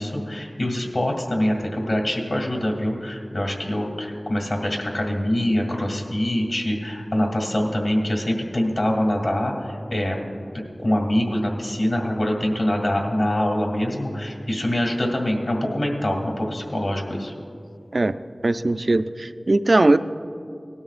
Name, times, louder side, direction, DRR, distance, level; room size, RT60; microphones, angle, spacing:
voice 1, 0.0-10.3 10.5-17.3, left 1 dB, 65° left, 0 dB, 2.1 m, -24 dB
voice 2, 18.4-20.0, right 2 dB, 60° right, 11 dB, 0.4 m, -19 dB
18.0 x 12.5 x 2.5 m, 2.4 s
wide cardioid pair, 50°, 0 cm